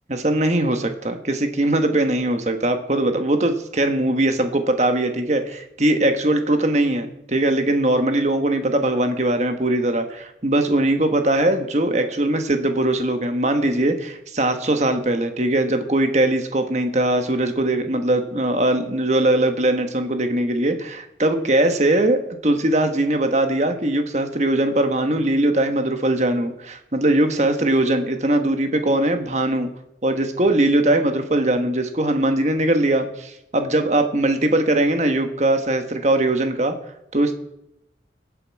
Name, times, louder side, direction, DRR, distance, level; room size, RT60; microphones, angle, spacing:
voice 1, 0.1-29.7 30.0-36.7 37.1-37.3, right 1 dB, 40° right, 7 dB, 1.3 m, -20 dB
21.0 x 7.7 x 4.7 m, 0.81 s
head